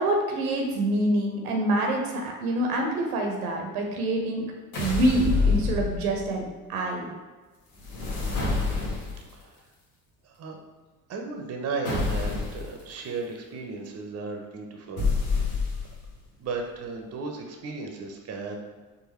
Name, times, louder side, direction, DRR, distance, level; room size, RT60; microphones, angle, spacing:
voice 1, 0.0-4.5 4.8-7.1, right 1 dB, 75° right, 1 dB, 0.8 m, -26 dB
sound 1, 4.7-6.3 7.8-9.3 11.8-12.7 15.0-16.1, left 4 dB, 65° left, 1.2 m, -27 dB
voice 2, 10.2-10.6 11.1-15.1 15.5-15.6 16.4-18.6, right 4 dB, 35° right, 2 dB, 0.7 m, -35 dB
4.6 x 2.6 x 3.1 m, 1.3 s
figure-of-eight pair, 55°, 46 cm